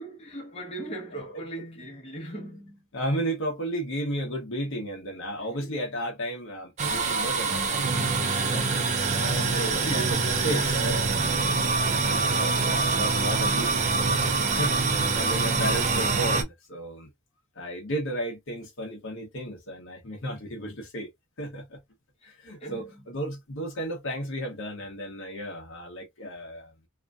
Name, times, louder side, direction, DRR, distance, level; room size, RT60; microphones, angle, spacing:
voice 1, 0.0-2.9 5.6-5.7 9.1-11.6 22.2-23.1, right 1 dB, 25° left, 1.0 m, -38 dB
voice 2, 1.1-1.4 2.9-11.1 12.0-17.1 17.5-21.1 21.4-21.8 22.2-26.7, right 1 dB, 60° left, 0.9 m, -34 dB
sound 1, 6.8-16.4, right 4 dB, 30° right, 0.5 m, -25 dB
2.9 x 2.5 x 2.3 m
head